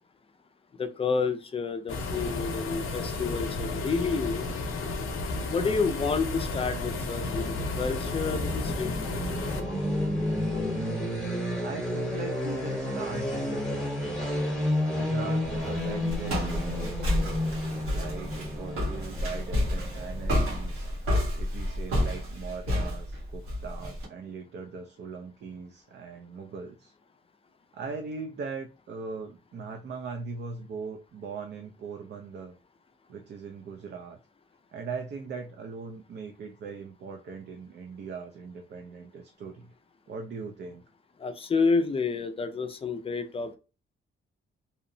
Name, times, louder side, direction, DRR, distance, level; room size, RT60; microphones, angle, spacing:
voice 1, 0.8-4.4 5.5-8.9 41.2-43.6, left 4 dB, 25° left, 0.4 m, -29 dB
sound 1, 1.9-9.6, left 3 dB, 90° left, 0.6 m, -33 dB
sound 2, 7.0-20.9, left 1 dB, 5° left, 0.8 m, -31 dB
voice 2, 11.3-14.3 14.9-17.4 17.9-20.9 21.3-26.9 27.7-32.5 33.1-34.2 34.7-39.7 40.1-40.8, right 5 dB, 55° right, 0.4 m, -40 dB
Walk footsteps, 15.4-24.0, left 1 dB, 85° right, 1.1 m, -30 dB
2.8 x 2.0 x 2.6 m
cardioid pair, 115°, 21 cm